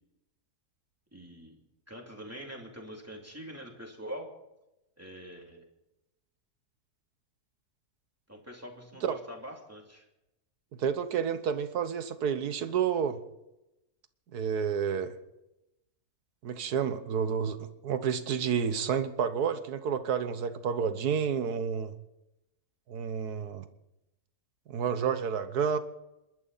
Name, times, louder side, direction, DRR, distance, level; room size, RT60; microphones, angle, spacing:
voice 1, 1.1-1.6 1.9-4.3 5.0-5.6 8.3-10.0, equal, 10° right, 2.9 m, -44 dB
voice 2, 10.8-13.2 14.3-15.1 16.4-21.9 22.9-23.6 24.7-25.8, right 7 dB, 80° right, 1.6 m, -30 dB
27.5 x 12.5 x 4.2 m
omnidirectional pair, 1.6 m